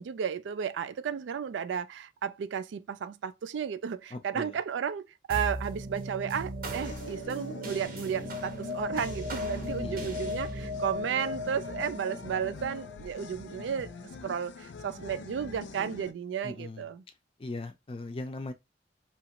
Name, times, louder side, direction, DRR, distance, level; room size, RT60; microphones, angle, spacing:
voice 1, 0.0-13.9 14.2-17.0, right 7 dB, 90° right, 0.3 m, -33 dB
voice 2, 4.1-4.6 9.8-10.1 16.4-16.9 17.4-18.5, left 2 dB, 30° left, 0.4 m, -39 dB
sound 1, 5.3-14.0, left 1 dB, 50° right, 0.7 m, -37 dB
sound 2, 6.8-16.1, left 4 dB, 85° left, 0.4 m, -44 dB
2.9 x 2.5 x 2.8 m
head